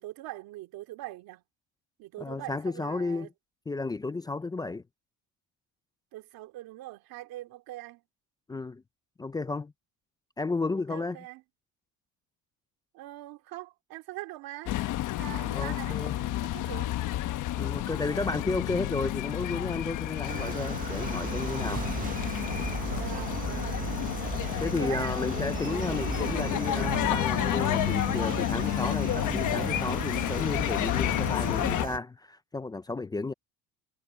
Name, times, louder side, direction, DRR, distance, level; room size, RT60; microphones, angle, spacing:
voice 1, 0.0-1.4 2.0-3.3 6.1-8.0 10.9-11.4 12.9-14.8 15.1-16.9 22.9-23.9 24.8-25.1, right 16 dB, 65° right, 2.4 m, -42 dB
voice 2, 2.2-3.3 3.7-4.8 8.5-8.8 9.2-9.7 10.4-11.2 15.5-16.2 17.6-21.8 24.6-33.3, left 3 dB, 10° left, 0.4 m, -33 dB
sound 1, 14.7-31.9, left 14 dB, 55° left, 1.1 m, -30 dB
sound 2, 20.3-32.0, right 7 dB, 20° right, 0.7 m, -36 dB
cardioid pair, 145°, 38 cm